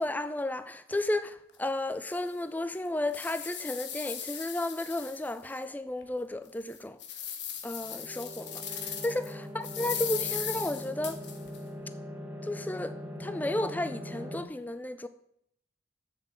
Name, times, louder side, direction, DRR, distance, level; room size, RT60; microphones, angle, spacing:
voice 1, 0.0-7.0 7.6-11.2 12.4-15.1, left 1 dB, 10° left, 0.3 m, -33 dB
sound 1, 1.5-1.6 2.1-2.2 2.7-5.6 6.0-6.1 6.6-9.3 9.6-11.6, left 8 dB, 65° left, 1.3 m, -38 dB
sound 2, 7.8-14.4, left 1 dB, 10° right, 1.0 m, -41 dB
7.5 x 7.0 x 7.5 m
head